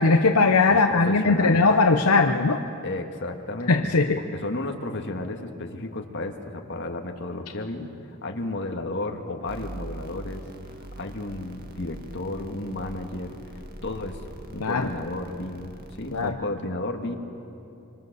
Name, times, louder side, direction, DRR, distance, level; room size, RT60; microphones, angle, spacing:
voice 1, 0.0-2.6 3.7-4.2 14.6-14.9 16.1-16.4, left 3 dB, 80° left, 5 dB, 0.9 m, -19 dB
voice 2, 0.7-1.7 2.8-3.8 4.2-10.4 10.8-14.2 14.5-17.1, left 2 dB, 55° left, 3 dB, 1.9 m, -33 dB
sound 1, 9.5-16.3, right 1 dB, 45° right, 1.8 m, -42 dB
26.0 x 25.0 x 6.8 m, 2.8 s
head